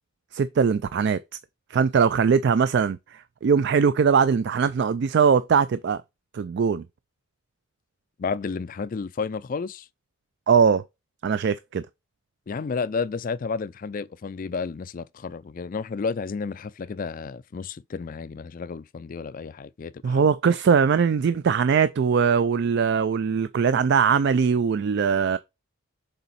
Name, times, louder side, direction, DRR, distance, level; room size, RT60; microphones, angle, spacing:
voice 1, 0.3-1.2 1.7-6.0 6.3-6.8 10.5-10.8 11.2-11.8 20.0-25.4, right 6 dB, 50° right, 0.3 m, -21 dB
voice 2, 8.2-9.9 12.5-20.2, left 5 dB, 40° left, 0.3 m, -31 dB
6.8 x 4.1 x 4.0 m
head